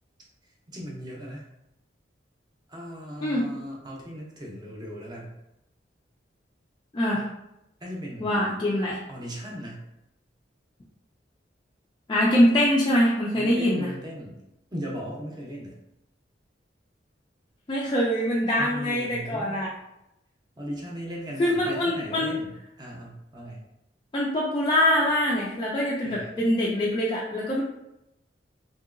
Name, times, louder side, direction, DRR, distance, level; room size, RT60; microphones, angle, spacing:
voice 1, 0.7-1.4 2.7-5.4 7.8-8.5 9.1-9.8 13.3-14.4 14.7-15.7 18.6-19.6 20.6-23.6 26.0-26.3, equal, 20° right, -2 dB, 0.6 m, -37 dB
voice 2, 6.9-7.3 8.2-9.0 12.1-13.9 17.7-19.7 21.4-22.3 24.1-27.6, left 1 dB, 25° left, -6 dB, 0.3 m, -24 dB
2.9 x 2.7 x 2.5 m, 0.87 s
head